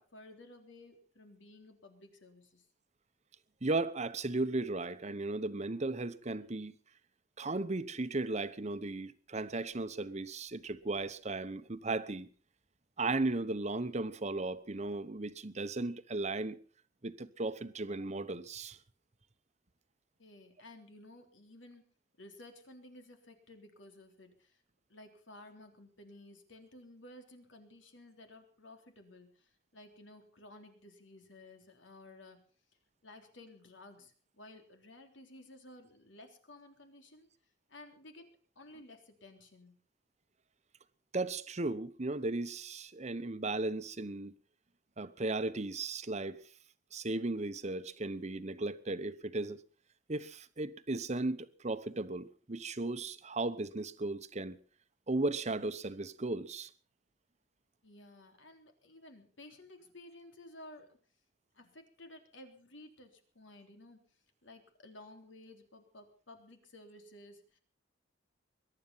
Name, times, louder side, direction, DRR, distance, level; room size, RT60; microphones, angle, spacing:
voice 1, 0.0-2.7 20.2-21.8 22.2-24.6 24.9-32.4 33.0-37.3 37.7-38.2 38.6-39.8 57.8-61.0 61.5-64.0 64.4-67.6, left 1 dB, 85° left, 3.5 m, -55 dB
voice 2, 3.6-6.7 7.4-12.3 13.0-16.6 17.0-18.8 41.1-44.3 45.0-46.4 46.9-49.6 50.1-54.6 55.1-56.7, right 2 dB, 35° right, 1.0 m, -36 dB
22.0 x 11.0 x 5.6 m
head